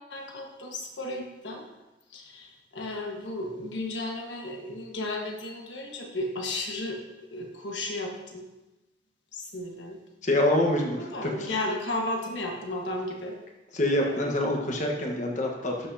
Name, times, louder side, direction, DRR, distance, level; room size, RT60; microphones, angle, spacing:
voice 1, 0.0-1.6 2.1-7.0 7.3-8.4 9.3-10.0 11.1-13.3 14.0-14.3, left 2 dB, 80° left, 1 dB, 1.4 m, -34 dB
voice 2, 10.2-11.5 13.7-15.9, left 1 dB, 45° left, 1 dB, 1.2 m, -26 dB
12.0 x 6.0 x 2.7 m, 1.0 s
head